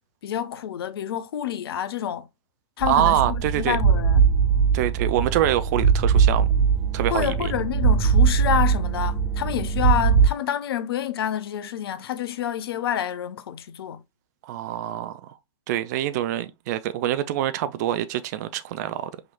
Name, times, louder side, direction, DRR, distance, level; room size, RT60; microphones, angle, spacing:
voice 1, 0.2-2.2 2.8-4.2 7.1-14.0, left 10 dB, 50° left, 0.5 m, -28 dB
sound 1, 2.8-10.3, right 6 dB, 5° right, 0.7 m, -20 dB
voice 2, 2.9-3.8 4.7-6.5 6.9-7.5 14.4-15.3 15.7-19.1, right 12 dB, 35° right, 0.4 m, -25 dB
5.6 x 2.9 x 2.2 m
figure-of-eight pair, 110°, 16 cm